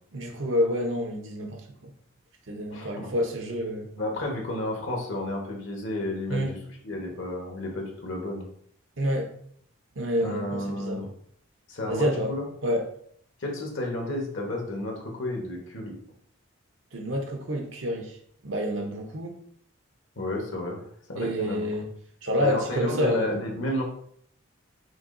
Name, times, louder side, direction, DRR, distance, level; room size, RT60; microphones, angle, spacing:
voice 1, 0.1-1.9 2.5-3.9 6.3-6.5 9.0-9.3 10.0-11.0 11.9-12.3 12.6-12.8 16.9-18.2 18.4-19.4 21.2-21.9 22.2-23.4, equal, 70° right, 2 dB, 0.9 m, -28 dB
voice 2, 2.7-3.1 4.0-6.6 6.8-8.5 10.2-11.1 11.7-12.4 13.4-15.9 20.2-20.8 21.1-21.7 22.4-23.8, left 1 dB, 65° left, 0 dB, 1.2 m, -31 dB
5.8 x 2.8 x 2.6 m, 0.66 s
head